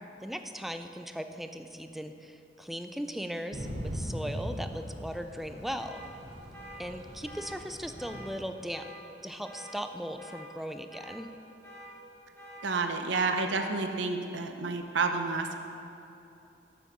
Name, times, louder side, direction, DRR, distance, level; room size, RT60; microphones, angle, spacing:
voice 1, 0.2-6.0 6.8-8.9 9.2-11.3, equal, ahead, 7 dB, 0.4 m, -38 dB
Thunder / Rain, 3.5-8.5, equal, 65° right, 2.5 m, -40 dB
sound 1, 5.8-6.1 6.5-6.8 7.2-7.5 8.0-8.2 8.7-9.0 9.4-9.7 10.2-10.4 10.9-11.2 11.6-11.9 12.4-12.6 13.1-13.4, equal, 15° left, 2.1 m, -47 dB
voice 2, 12.6-15.5, right 4 dB, 85° right, 5 dB, 0.7 m, -30 dB
7.2 x 7.2 x 6.7 m, 2.7 s
head